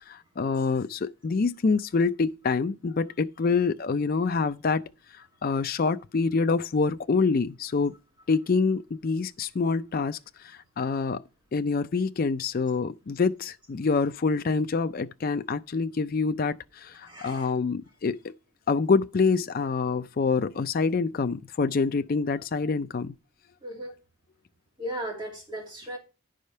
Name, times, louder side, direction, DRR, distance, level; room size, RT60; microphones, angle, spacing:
voice 1, 0.1-4.8 5.1-7.9 8.3-11.2 11.5-18.3 18.7-23.1, left 4 dB, 45° left, 0.4 m, -26 dB
voice 2, 17.0-17.5 23.6-23.9 24.8-26.0, right 1 dB, 20° right, 2.6 m, -36 dB
10.5 x 4.9 x 5.5 m
head